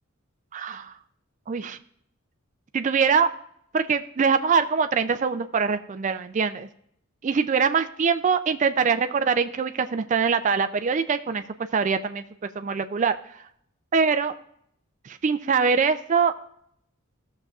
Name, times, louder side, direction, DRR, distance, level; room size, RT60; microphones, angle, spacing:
voice 1, 0.5-0.9 1.5-1.8 2.7-3.3 3.7-6.7 7.2-11.4 11.7-12.2 12.6-13.2 13.9-14.3 15.0-16.3, right 5 dB, 35° right, 10 dB, 0.4 m, -23 dB
16.5 x 6.6 x 2.4 m, 0.72 s
head